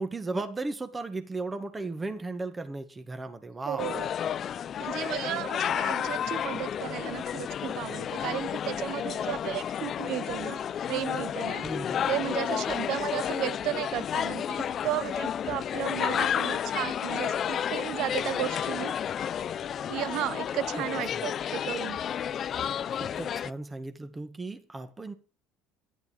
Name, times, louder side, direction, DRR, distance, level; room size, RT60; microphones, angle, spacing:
voice 1, 0.0-3.9 11.6-12.1 21.1-21.3 22.9-25.1, right 3 dB, 15° right, 1.7 m, -36 dB
voice 2, 3.6-4.1 4.8-10.6 10.9-11.6 12.1-18.9 19.9-22.0, right 14 dB, 60° right, 0.6 m, -34 dB
sound 1, 3.8-23.5, left 9 dB, 35° left, 0.6 m, -31 dB
13.0 x 11.0 x 5.0 m
cardioid pair, 140°, 0 cm